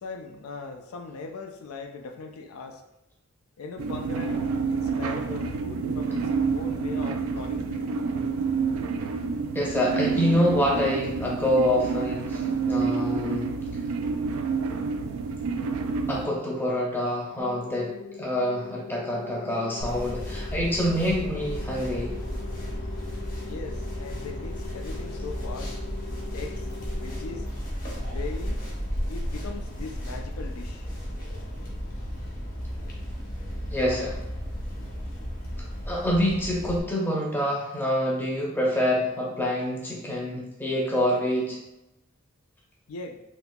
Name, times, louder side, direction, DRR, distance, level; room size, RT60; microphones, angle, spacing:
voice 1, 0.0-2.8 3.6-8.1 23.5-25.7 26.3-26.7 27.0-27.5 28.0-28.6 29.1-30.9 42.9-43.2, left 4 dB, 90° left, 4 dB, 0.4 m, -40 dB
sound 1, 3.8-16.3, right 5 dB, 75° right, 0.3 m, -28 dB
voice 2, 9.5-13.5 16.1-22.2 33.7-34.2 35.9-41.6, equal, 10° left, -3 dB, 0.6 m, -26 dB
sound 2, 17.4-27.4, left 4 dB, 70° left, 1.0 m, -42 dB
sound 3, 19.8-36.8, equal, 40° left, 0.9 m, -34 dB
3.8 x 2.8 x 2.2 m, 0.90 s
head